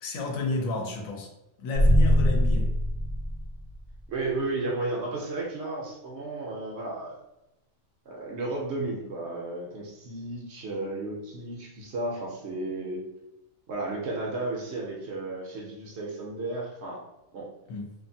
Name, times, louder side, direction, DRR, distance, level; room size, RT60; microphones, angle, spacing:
voice 1, 0.0-1.3 1.6-2.7 17.7-17.9, left 2 dB, 80° left, 1 dB, 1.0 m, -31 dB
sound 1, 1.7-4.0, equal, 45° right, 0.4 m, -22 dB
voice 2, 4.1-7.2 8.1-13.0 13.7-17.0 17.3-17.5, right 2 dB, 65° right, -2 dB, 0.8 m, -33 dB
2.5 x 2.4 x 2.6 m, 0.93 s
omnidirectional pair, 1.4 m